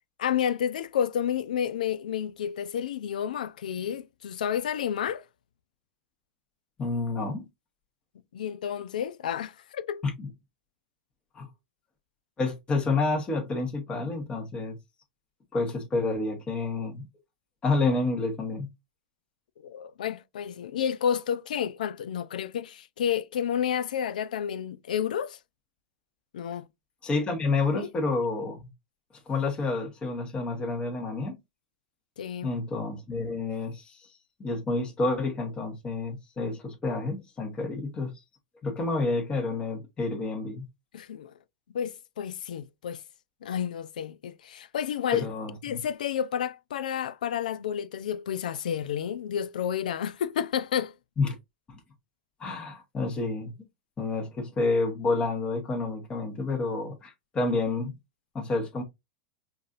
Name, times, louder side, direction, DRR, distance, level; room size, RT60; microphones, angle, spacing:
voice 1, 0.2-5.2 8.3-10.0 19.6-25.4 26.3-26.7 27.7-27.9 32.2-32.5 40.9-41.3 41.7-43.0 43.4-45.3 45.6-50.9, left 9 dB, 80° left, 0.4 m, -30 dB
voice 2, 6.8-7.5 10.0-10.3 11.3-11.5 12.4-14.8 15.5-17.0 17.6-18.7 27.0-28.6 29.3-31.4 32.4-34.1 34.4-38.1 38.6-40.6 45.1-45.8 51.2-51.3 51.7-51.8 52.4-53.5 54.0-58.0 58.3-58.8, left 3 dB, 20° left, 1.2 m, -29 dB
5.3 x 2.6 x 2.5 m
hypercardioid pair, 105°, 4 cm